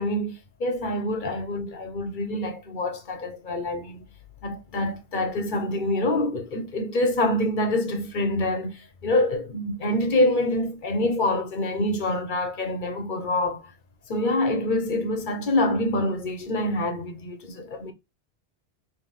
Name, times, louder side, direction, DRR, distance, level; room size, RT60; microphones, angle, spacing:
voice 1, 0.0-4.0 4.4-13.7 14.1-17.9, left 1 dB, 55° left, 0.9 m, -26 dB
3.6 x 3.1 x 3.0 m
omnidirectional pair, 1.1 m